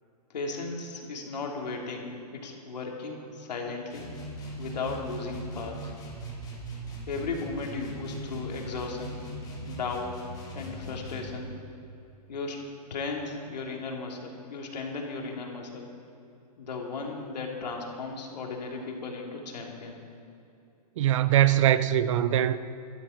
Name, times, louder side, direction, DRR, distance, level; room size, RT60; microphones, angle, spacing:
voice 1, 0.3-4.1 4.6-5.9 7.1-9.2 9.7-10.2 10.5-11.6 12.3-12.6 12.9-15.9 16.6-20.0, left 4 dB, 80° left, 3.1 m, -36 dB
sound 1, 3.9-11.4, right 1 dB, 20° left, 3.1 m, -40 dB
voice 2, 21.0-22.6, right 11 dB, 50° right, 0.6 m, -22 dB
19.0 x 13.5 x 4.5 m
hypercardioid pair, 145°, 21 cm